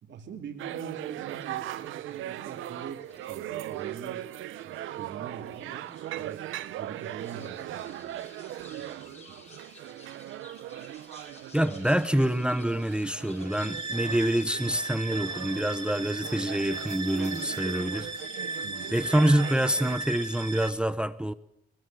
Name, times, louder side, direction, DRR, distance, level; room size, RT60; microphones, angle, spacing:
voice 1, 0.0-4.3 4.6-8.2 8.8-9.5 14.6-14.7 18.6-19.0, right 6 dB, 65° right, 2.9 m, -44 dB
sound 1, 0.6-20.0, right 13 dB, 85° right, 1.0 m, -39 dB
sound 2, 1.2-20.8, left 3 dB, 35° left, 5.9 m, -55 dB
voice 2, 11.5-18.1 18.9-21.3, right 1 dB, 5° right, 0.9 m, -26 dB
sound 3, 13.5-20.7, right 3 dB, 25° right, 2.5 m, -36 dB
22.5 x 20.5 x 7.8 m
cardioid pair, 90°, 20 cm